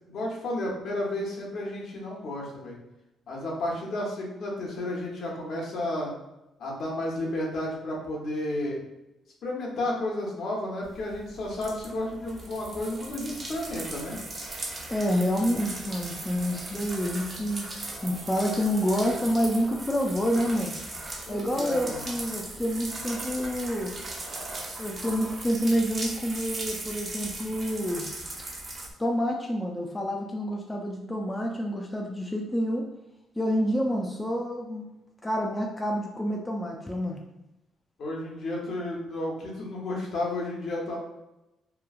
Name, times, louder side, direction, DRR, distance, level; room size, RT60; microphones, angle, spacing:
voice 1, 0.1-2.8 3.3-6.1 6.6-8.8 9.4-14.2 21.3-22.0 38.0-41.0, left 1 dB, 65° left, -2 dB, 0.8 m, -32 dB
sound 1, 10.8-28.9, right 2 dB, 40° right, 0.7 m, -38 dB
voice 2, 14.9-17.7 18.0-20.8 21.3-23.9 24.8-28.1 29.0-32.8 33.4-34.9 35.2-37.2, equal, 15° left, 1 dB, 0.4 m, -28 dB
3.0 x 2.3 x 2.3 m, 0.93 s
cardioid pair, 90°, 0 cm